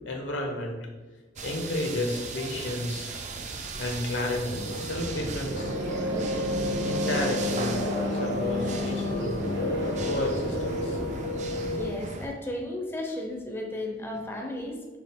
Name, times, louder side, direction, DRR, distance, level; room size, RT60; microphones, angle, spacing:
voice 1, 0.0-0.8 1.4-3.1 3.8-5.7 6.8-7.8 8.1-9.3 10.0-11.0, left 1 dB, 75° left, 1 dB, 0.9 m, -32 dB
sound 1, 1.4-12.3, right 4 dB, 40° right, 0.5 m, -39 dB
sound 2, 4.5-11.9, left 1 dB, 75° right, 1.0 m, -30 dB
voice 2, 11.7-15.0, left 1 dB, 15° left, 0 dB, 0.5 m, -34 dB
6.1 x 2.4 x 3.5 m, 1.3 s
head